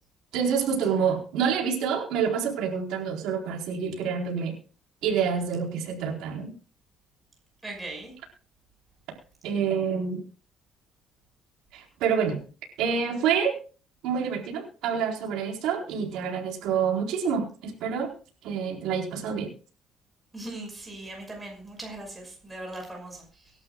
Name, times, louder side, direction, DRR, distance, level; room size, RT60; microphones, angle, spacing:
voice 1, 0.3-4.5 5.0-6.5 9.4-10.2 11.7-12.4 12.8-13.5 14.0-18.1 18.4-19.5, right 6 dB, 85° right, 1 dB, 4.2 m, -27 dB
voice 2, 7.6-8.1 20.3-23.5, right 2 dB, 10° right, 0 dB, 5.9 m, -39 dB
25.0 x 12.0 x 2.4 m, 0.35 s
cardioid pair, 175°, 0 cm